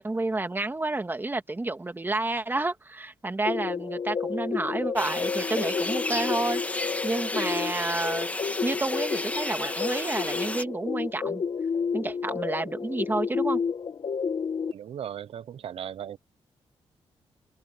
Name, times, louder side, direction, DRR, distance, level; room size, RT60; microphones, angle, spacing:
voice 1, 0.0-6.6 7.0-8.3 8.6-11.4 11.9-13.6, right 2 dB, 20° right, 2.2 m, -30 dB
sound 1, 3.4-14.7, left 6 dB, 55° left, 1.6 m, -31 dB
sound 2, 5.0-10.6, left 2 dB, 15° left, 2.0 m, -33 dB
voice 2, 14.7-16.2, right 9 dB, 75° right, 0.9 m, -37 dB
cardioid pair, 90°, 10 cm